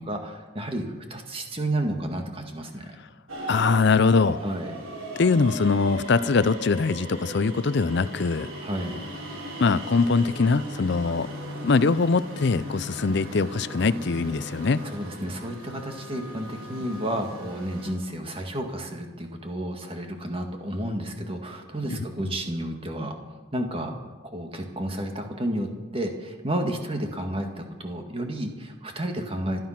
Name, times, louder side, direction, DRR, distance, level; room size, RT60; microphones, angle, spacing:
voice 1, 0.0-3.0 4.4-4.8 8.6-9.0 14.8-23.2 23.5-23.9 24.3-29.6, right 1 dB, 25° right, 4 dB, 1.9 m, -31 dB
sound 1, 3.3-17.9, equal, 85° right, 4.1 m, -38 dB
voice 2, 3.5-4.4 5.2-8.5 9.6-11.3 11.6-14.8 21.9-22.0, left 4 dB, 50° left, 15 dB, 0.5 m, -22 dB
26.0 x 9.3 x 5.9 m, 1.2 s
head